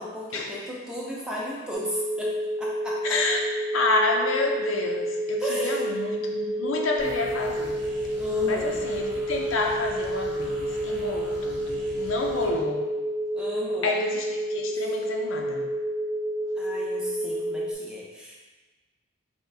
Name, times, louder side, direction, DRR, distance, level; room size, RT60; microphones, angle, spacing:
voice 1, 0.0-3.2 5.4-5.9 8.2-8.8 13.3-13.9 16.6-18.4, left 1 dB, 5° right, -5 dB, 0.6 m, -34 dB
sound 1, 1.7-17.7, right 1 dB, 60° right, 0.5 m, -29 dB
voice 2, 3.0-3.4 3.7-7.8 8.4-12.9 13.8-15.6, left 3 dB, 85° left, 1 dB, 0.5 m, -29 dB
sound 2, 7.0-12.6, equal, 25° right, 0.9 m, -43 dB
4.4 x 2.4 x 3.3 m, 1.2 s
head